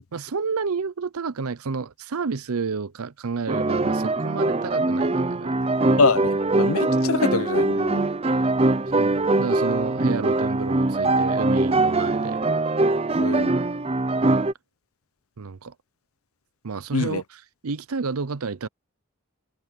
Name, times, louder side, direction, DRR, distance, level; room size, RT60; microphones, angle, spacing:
voice 1, 0.1-5.6 8.9-12.4 15.4-15.7 16.6-18.7, right 5 dB, 80° right, 0.7 m, -30 dB
sound 1, 3.5-14.5, right 2 dB, 25° right, 0.7 m, -22 dB
voice 2, 6.0-8.1 13.2-13.5 16.9-17.2, left 4 dB, 75° left, 0.8 m, -24 dB
head